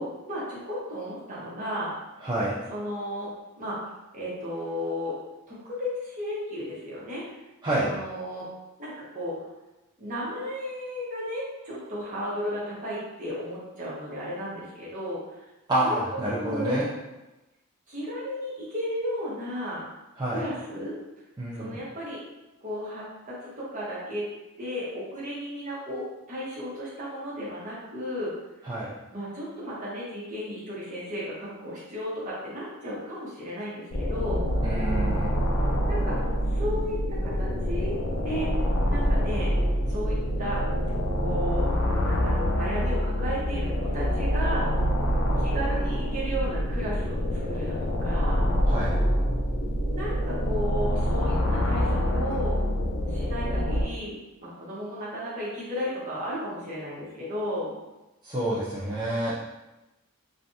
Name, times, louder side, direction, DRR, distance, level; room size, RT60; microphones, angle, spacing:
voice 1, 0.0-1.9 2.7-3.3 3.6-3.9 4.1-5.2 5.5-7.2 7.8-8.5 8.8-9.4 10.0-15.4 15.8-16.0 16.3-16.8 17.9-19.8 20.3-21.0 21.5-22.2 22.6-24.3 24.6-28.3 29.1-34.4 35.9-36.2 36.5-38.0 38.2-38.5 38.9-39.5 39.9-40.6 41.2-41.7 42.0-44.7 45.4-48.5 49.9-52.6 53.1-57.8, equal, 40° right, -7 dB, 1.0 m, -34 dB
voice 2, 2.2-2.6 7.6-7.9 15.7-16.8 20.2-20.4 21.4-21.8 28.7-28.9 34.6-35.3 48.7-48.9 58.2-59.3, right 1 dB, 20° right, -8 dB, 0.4 m, -28 dB
sound 1, 33.9-53.8, equal, 65° left, 0.5 m, -26 dB
3.3 x 2.5 x 2.7 m, 1.0 s
head